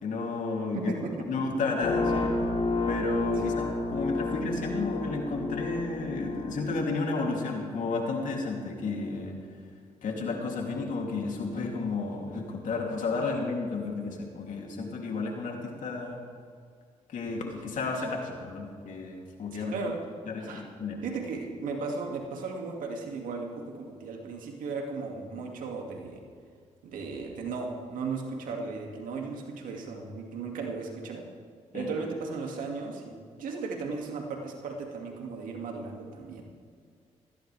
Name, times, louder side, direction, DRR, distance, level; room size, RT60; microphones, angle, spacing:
voice 1, 0.0-0.9 1.3-2.3 2.9-9.4 10.0-16.2 17.1-19.8 20.3-21.0 31.7-31.9, left 3 dB, 70° left, 0 dB, 3.0 m, -32 dB
voice 2, 0.7-1.3 3.4-3.6 19.5-20.0 20.4-20.6 21.0-26.2 26.8-31.3 31.7-36.4, right 4 dB, 80° right, 1 dB, 2.4 m, -36 dB
sound 1, 1.8-6.8, left 2 dB, 45° left, 3.1 m, -30 dB
19.5 x 15.5 x 3.5 m, 2.2 s
supercardioid pair, 55°, 14 cm